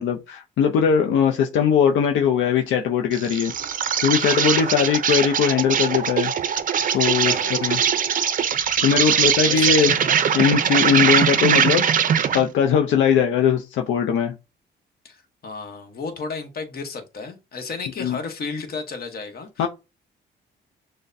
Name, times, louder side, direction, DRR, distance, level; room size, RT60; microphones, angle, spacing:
voice 1, 0.0-3.5 4.0-6.3 6.9-7.8 8.8-9.9 10.3-11.9 12.3-14.4 18.0-18.2 19.6-19.7, left 7 dB, 75° left, 0.5 m, -20 dB
Insect, 3.1-12.5, right 8 dB, 45° right, 0.5 m, -21 dB
voice 2, 4.5-5.0 7.1-7.7 8.9-10.2 15.0-19.7, left 4 dB, 50° left, 1.0 m, -34 dB
6.3 x 2.1 x 2.6 m
cardioid pair, 90°, 20 cm